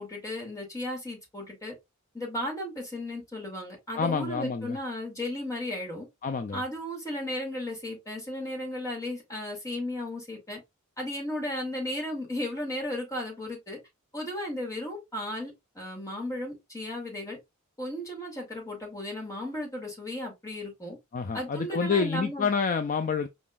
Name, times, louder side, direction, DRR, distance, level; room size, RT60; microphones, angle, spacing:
voice 1, 0.0-1.7 2.1-6.1 6.5-10.6 11.0-13.8 14.1-17.4 17.8-21.0 21.3-22.5, left 1 dB, 15° left, 2.3 m, -35 dB
voice 2, 4.0-4.8 6.2-6.6 21.1-23.3, left 5 dB, 40° left, 0.4 m, -28 dB
4.9 x 3.8 x 2.4 m
head